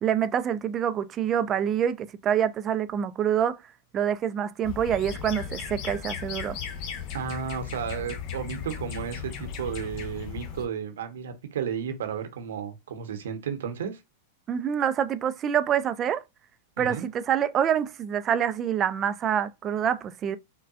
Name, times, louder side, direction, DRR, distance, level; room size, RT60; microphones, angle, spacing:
voice 1, 0.0-3.6 3.9-6.6 14.5-16.2 16.8-20.4, right 9 dB, 30° right, 0.4 m, -26 dB
sound 1, 4.6-10.7, left 7 dB, 45° left, 0.8 m, -36 dB
voice 2, 7.1-14.0 16.8-17.0, right 7 dB, 80° right, 1.0 m, -33 dB
5.6 x 2.2 x 2.5 m
hypercardioid pair, 115°, 0 cm